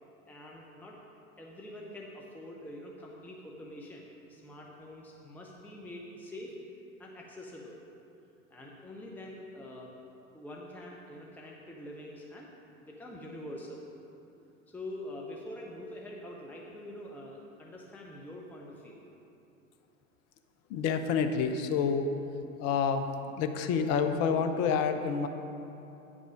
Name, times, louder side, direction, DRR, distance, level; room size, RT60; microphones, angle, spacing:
voice 1, 0.3-1.0 1.4-6.5 7.0-7.8 8.5-9.9 10.3-12.5 12.8-13.8 14.7-19.0, left 1 dB, 5° left, -2 dB, 0.8 m, -45 dB
voice 2, 20.7-22.2 22.6-25.3, left 6 dB, 35° left, 8 dB, 0.7 m, -28 dB
9.0 x 6.1 x 5.1 m, 2.8 s
figure-of-eight pair, 85°, 42 cm